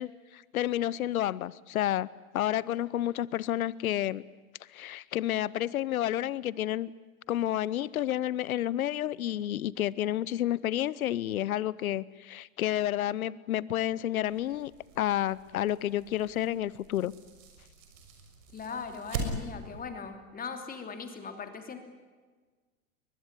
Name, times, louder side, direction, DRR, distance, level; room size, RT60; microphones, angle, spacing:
voice 1, 0.0-2.1 2.3-4.2 4.7-6.9 7.3-14.7 15.0-17.1, left 12 dB, 80° left, 21 dB, 0.8 m, -30 dB
sound 1, 14.2-19.8, right 3 dB, 65° right, 6.4 m, -41 dB
voice 2, 18.5-21.8, left 5 dB, 20° left, 6 dB, 3.1 m, -39 dB
22.5 x 21.0 x 9.9 m, 1.4 s
hypercardioid pair, 110°, 42 cm